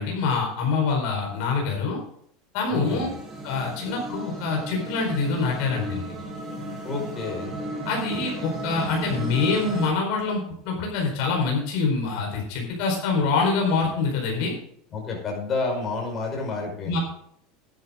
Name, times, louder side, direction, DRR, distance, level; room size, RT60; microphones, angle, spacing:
voice 1, 0.0-2.0 2.5-3.1 3.4-6.1 7.8-14.5 16.9-17.0, left 4 dB, 65° left, 0 dB, 4.4 m, -25 dB
voice 2, 2.7-3.1 6.8-7.5 14.9-17.0, left 3 dB, 30° left, 0 dB, 5.2 m, -30 dB
sound 1, 2.8-9.9, right 1 dB, 15° right, 4.9 m, -34 dB
11.0 x 11.0 x 3.8 m, 0.67 s
supercardioid pair, 130°, 0 cm